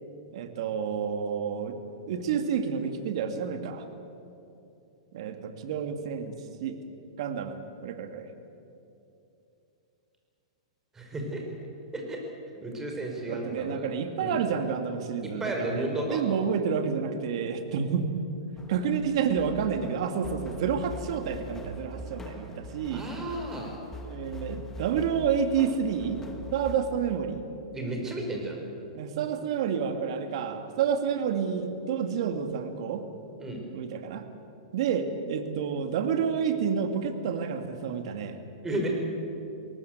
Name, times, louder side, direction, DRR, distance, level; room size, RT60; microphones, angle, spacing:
voice 1, 0.3-1.8 2.1-3.8 5.1-6.3 6.6-6.8 7.2-8.3 13.3-18.1 18.7-23.0 24.0-26.2 26.5-27.4 28.9-33.0 33.7-34.2 34.7-38.4, right 7 dB, 60° right, 7 dB, 2.4 m, -29 dB
voice 2, 10.9-11.4 11.9-12.2 12.6-13.9 14.2-14.4 15.2-16.2 22.9-23.8 27.7-28.6 33.4-33.6 38.6-38.9, right 1 dB, 15° right, 1 dB, 5.4 m, -33 dB
sound 1, 18.6-26.8, left 1 dB, 10° left, 2.6 m, -42 dB
23.0 x 18.5 x 8.2 m, 2.8 s
hypercardioid pair, 125°, 3 cm